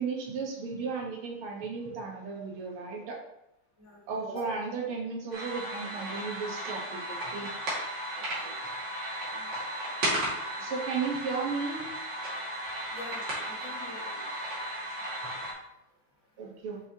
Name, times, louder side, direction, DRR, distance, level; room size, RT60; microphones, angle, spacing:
voice 1, 0.0-3.2 4.1-7.5 10.6-11.9 16.4-16.8, right 5 dB, 85° right, 0 dB, 2.1 m, -34 dB
sound 1, 5.3-15.5, right 1 dB, 55° right, 2.7 m, -35 dB
voice 2, 8.2-8.5 9.3-9.5 12.9-14.2, equal, 40° left, -6 dB, 2.2 m, -44 dB
6.4 x 5.8 x 2.8 m, 0.85 s
omnidirectional pair, 2.3 m